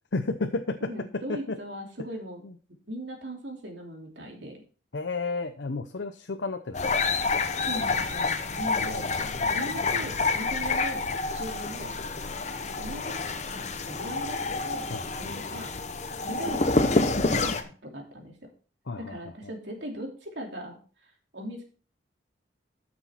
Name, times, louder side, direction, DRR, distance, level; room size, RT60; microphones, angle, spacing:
voice 1, 0.1-0.9 1.3-1.6 2.4-2.5 4.9-7.2 8.8-10.1 14.9-15.1 18.9-19.2, left 3 dB, 80° left, 7 dB, 0.7 m, -33 dB
voice 2, 0.8-2.4 2.9-4.6 7.6-9.1 9.5-11.9 12.7-14.4 14.6-14.9 15.2-15.7 16.2-18.5 19.0-21.6, right 1 dB, 75° right, 1 dB, 2.8 m, -39 dB
sound 1, 6.7-17.6, left 3 dB, 40° left, 0.9 m, -28 dB
12.5 x 6.2 x 4.4 m, 0.40 s
head